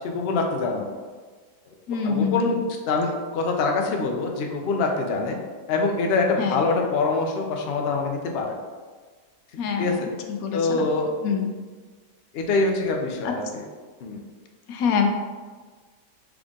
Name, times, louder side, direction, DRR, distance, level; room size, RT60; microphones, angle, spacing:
voice 1, 0.0-0.9 2.0-2.6 2.9-5.4 5.7-8.6 9.8-10.1 10.5-11.1 12.3-13.6 14.0-14.2, left 3 dB, 90° left, 2 dB, 0.5 m, -24 dB
voice 2, 1.9-2.6 6.4-6.8 9.6-10.8 11.2-11.5 13.2-13.3 14.7-15.1, left 6 dB, 70° left, 3 dB, 0.9 m, -26 dB
3.8 x 3.5 x 3.6 m, 1.5 s
omnidirectional pair, 1.8 m